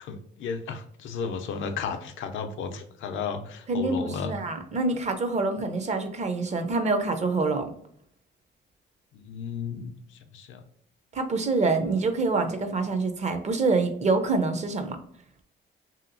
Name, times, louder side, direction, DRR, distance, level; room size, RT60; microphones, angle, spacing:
voice 1, 0.0-4.3 9.1-9.9 10.3-10.6, left 5 dB, 75° left, 7 dB, 0.5 m, -34 dB
voice 2, 3.7-7.7 11.1-15.0, right 3 dB, 35° right, 7 dB, 0.5 m, -26 dB
2.8 x 2.6 x 2.5 m, 0.63 s
cardioid pair, 90°, 20 cm